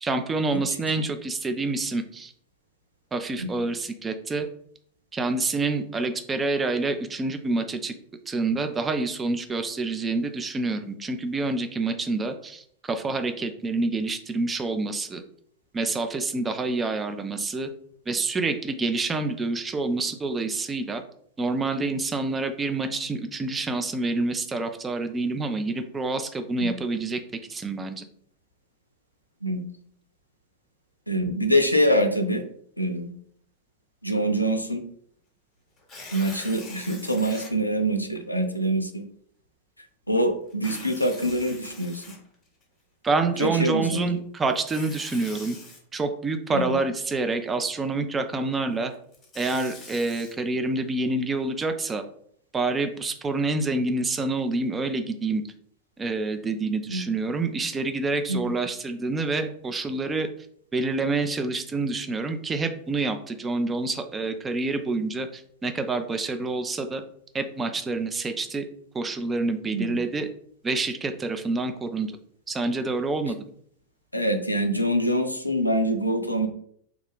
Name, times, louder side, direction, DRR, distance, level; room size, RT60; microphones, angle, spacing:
voice 1, 0.0-2.3 3.1-4.5 5.1-7.9 8.3-15.2 15.7-17.7 18.1-21.0 21.4-27.2 27.5-28.0 43.0-45.6 45.9-48.9 49.4-52.0 52.5-55.4 56.0-60.3 60.7-67.0 67.3-68.6 68.9-70.3 70.6-72.2 72.5-73.4, right 3 dB, 15° right, 7 dB, 0.3 m, -27 dB
voice 2, 31.1-32.4 32.8-33.1 34.0-34.8 36.1-39.0 40.1-42.0 43.4-44.2 46.5-46.8 56.9-57.0 58.3-58.5 69.7-70.0 74.1-76.5, equal, 85° left, 6 dB, 0.3 m, -25 dB
Tearing, 35.8-37.5 38.2-38.3 40.5-42.6 44.5-45.8 48.9-50.3, left 3 dB, 20° left, 0.9 m, -43 dB
2.3 x 2.3 x 3.4 m, 0.64 s
figure-of-eight pair, 90°, 0 cm